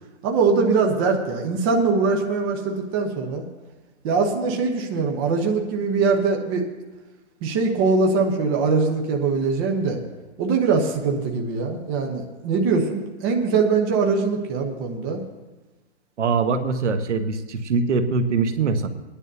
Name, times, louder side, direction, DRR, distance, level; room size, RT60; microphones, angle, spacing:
voice 1, 0.2-3.4 4.0-6.6 7.4-10.0 10.4-15.2, right 4 dB, 20° right, 2 dB, 0.8 m, -22 dB
voice 2, 16.2-18.9, right 4 dB, 75° right, 9 dB, 1.1 m, -22 dB
25.0 x 10.0 x 2.7 m, 1.1 s
hypercardioid pair, 160°, 35 cm